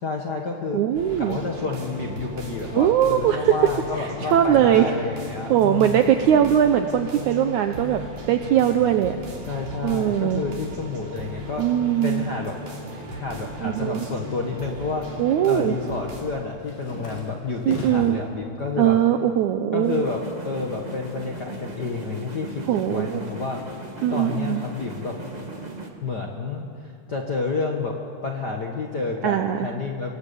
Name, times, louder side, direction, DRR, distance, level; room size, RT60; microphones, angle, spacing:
voice 1, 0.0-0.8 1.2-6.0 9.5-11.6 12.0-12.6 13.1-15.1 15.4-18.9 19.7-23.6 24.1-25.1 26.0-27.9 28.2-30.1, left 4 dB, 60° left, 1 dB, 1.1 m, -30 dB
voice 2, 0.7-1.4 2.7-4.9 5.2-9.2 9.8-10.4 11.6-12.2 13.6-14.1 15.2-15.8 17.7-18.2 18.8-20.0 22.7-23.3 24.0-24.6 29.2-29.7, right 10 dB, 80° right, 7 dB, 1.8 m, -21 dB
sound 1, 0.9-16.2, equal, 60° right, 4.7 m, -37 dB
sound 2, 16.3-18.3 18.7-19.4 19.7-21.3, equal, 80° left, 5.7 m, -40 dB
sound 3, 19.8-25.9, right 2 dB, 25° right, 0.8 m, -38 dB
26.0 x 20.5 x 7.0 m, 2.2 s
omnidirectional pair, 4.2 m